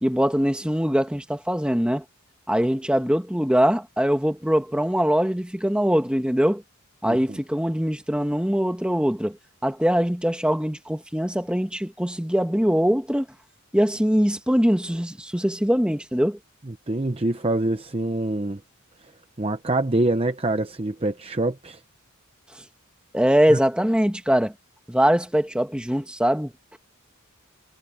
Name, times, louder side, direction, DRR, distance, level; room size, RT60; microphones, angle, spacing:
voice 1, 0.0-2.0 2.5-6.6 7.0-9.4 9.6-13.3 13.7-16.4 23.1-24.5 24.9-26.5, equal, 5° right, 1.6 m, -22 dB
voice 2, 7.0-7.4 16.7-18.6 19.4-21.8 23.5-23.6, right 2 dB, 25° right, 0.8 m, -25 dB
head